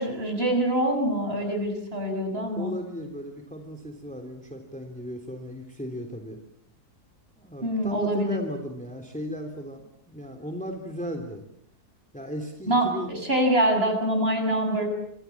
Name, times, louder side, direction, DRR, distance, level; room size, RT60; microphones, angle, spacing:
voice 1, 0.0-2.7 7.6-8.4 12.7-14.9, right 1 dB, 40° right, 5 dB, 7.0 m, -25 dB
voice 2, 2.5-6.4 7.4-11.4 12.1-13.1, equal, 5° left, 4 dB, 3.2 m, -36 dB
26.5 x 26.5 x 7.3 m, 0.68 s
omnidirectional pair, 1.7 m